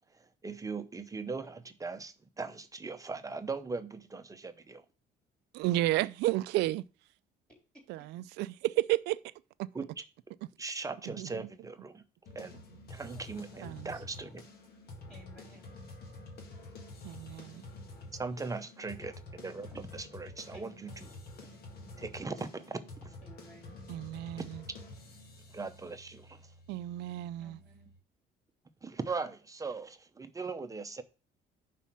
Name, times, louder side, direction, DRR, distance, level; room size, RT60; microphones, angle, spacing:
voice 1, 0.1-4.8 9.7-10.0 10.6-12.0 12.3-12.6 12.9-14.4 18.1-21.1 22.0-23.1 25.5-26.4 28.8-31.0, right 4 dB, 20° right, 0.7 m, -39 dB
voice 2, 5.5-6.8 7.9-9.2 9.6-9.7 11.2-11.3 13.6-13.9 17.0-17.6 23.9-24.6 26.7-27.6, right 16 dB, 85° right, 0.4 m, -32 dB
sound 1, 12.3-28.0, left 2 dB, 65° left, 1.7 m, -49 dB
voice 3, 13.2-13.5 15.1-15.7 20.5-21.1 23.2-23.7 27.4-27.9, equal, 5° left, 3.7 m, -56 dB
5.6 x 4.2 x 6.0 m
cardioid pair, 110°, 17 cm